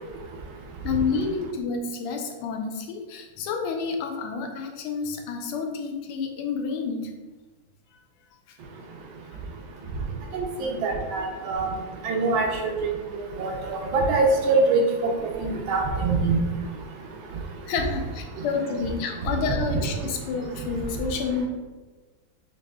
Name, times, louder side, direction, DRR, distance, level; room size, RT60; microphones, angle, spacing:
voice 1, 0.8-7.1 10.0-10.1 17.7-21.5, left 5 dB, 85° left, 3 dB, 1.5 m, -29 dB
voice 2, 10.3-11.7 12.0-12.9 13.4-15.1 15.4-16.4, right 3 dB, 75° right, 2 dB, 1.3 m, -24 dB
6.0 x 2.7 x 2.2 m, 1.3 s
omnidirectional pair, 2.4 m